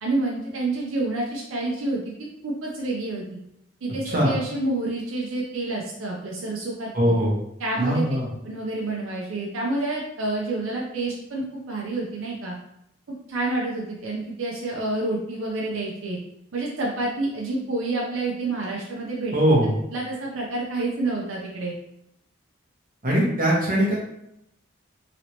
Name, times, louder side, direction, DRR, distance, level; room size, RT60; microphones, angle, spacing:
voice 1, 0.0-3.2 3.8-7.1 7.6-8.0 8.4-12.5 13.3-16.2 16.5-19.4 19.9-21.7, right 2 dB, 75° right, -3 dB, 0.6 m, -28 dB
voice 2, 6.9-7.3 7.8-8.3 19.3-19.7 23.0-23.9, equal, 40° right, -4 dB, 0.8 m, -20 dB
3.0 x 2.9 x 2.8 m, 0.80 s
head